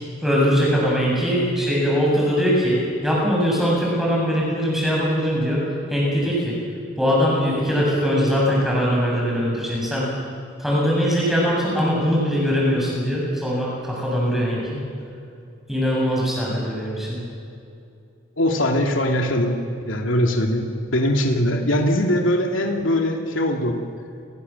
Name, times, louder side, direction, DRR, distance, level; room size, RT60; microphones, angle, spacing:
voice 1, 0.2-5.6 5.9-6.5 7.0-10.1 10.6-14.8 15.7-17.2, equal, ahead, -4 dB, 7.8 m, -21 dB
voice 2, 18.4-19.6 19.9-23.8, left 1 dB, 85° left, 3 dB, 2.8 m, -21 dB
30.0 x 21.0 x 7.3 m, 2.5 s
head